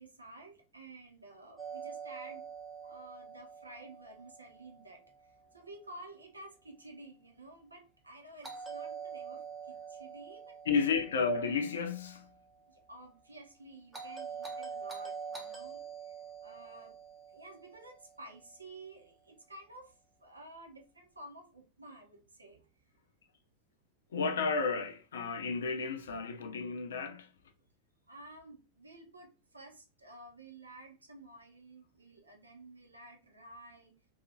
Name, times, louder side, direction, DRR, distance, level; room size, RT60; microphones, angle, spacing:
voice 1, 0.0-2.5 2.8-10.9 12.7-16.2 16.4-17.0 17.3-22.7 28.1-33.9, right 2 dB, 80° right, 0.6 m, -52 dB
Doorbell, 1.6-5.6 8.4-12.7 13.9-18.3, right 6 dB, 10° right, 0.7 m, -45 dB
voice 2, 10.7-12.3 24.1-27.3, left 5 dB, 65° left, 0.4 m, -32 dB
2.7 x 2.3 x 2.6 m
figure-of-eight pair, 90°, 0 cm